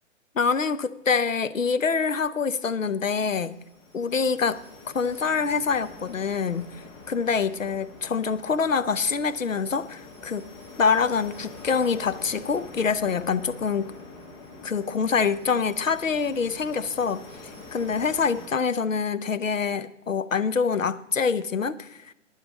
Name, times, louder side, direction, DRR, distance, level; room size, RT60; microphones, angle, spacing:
voice 1, 0.4-3.5 3.9-4.6 4.9-6.7 7.1-10.5 10.8-13.9 14.6-17.2 17.7-22.1, left 5 dB, 75° left, 13 dB, 0.8 m, -25 dB
sound 1, 2.8-18.5, left 2 dB, 20° left, 1.7 m, -45 dB
11.0 x 10.0 x 5.2 m, 0.82 s
figure-of-eight pair, 125°, 39 cm